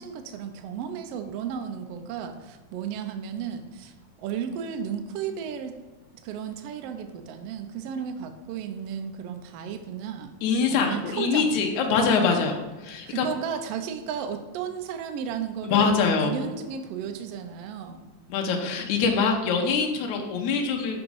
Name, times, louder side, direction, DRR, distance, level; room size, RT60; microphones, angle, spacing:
voice 1, 0.0-3.9 4.2-5.8 6.2-10.3 10.7-11.6 12.4-12.5 13.1-18.1, right 7 dB, 85° right, 6 dB, 1.4 m, -34 dB
voice 2, 10.4-12.6 12.8-13.3 15.6-16.3 18.3-21.0, left 5 dB, 80° left, 1 dB, 2.2 m, -24 dB
6.1 x 5.3 x 4.7 m, 1.2 s
omnidirectional pair, 3.5 m